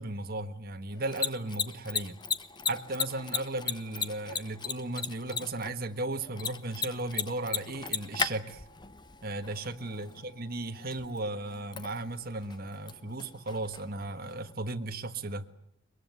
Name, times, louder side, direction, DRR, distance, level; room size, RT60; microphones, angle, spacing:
voice 1, 0.0-2.2 2.6-8.6 9.2-15.5, right 2 dB, 50° right, 1.5 m, -36 dB
Mechanisms, 0.9-14.5, left 6 dB, 25° left, 1.1 m, -38 dB
23.0 x 22.5 x 9.5 m
head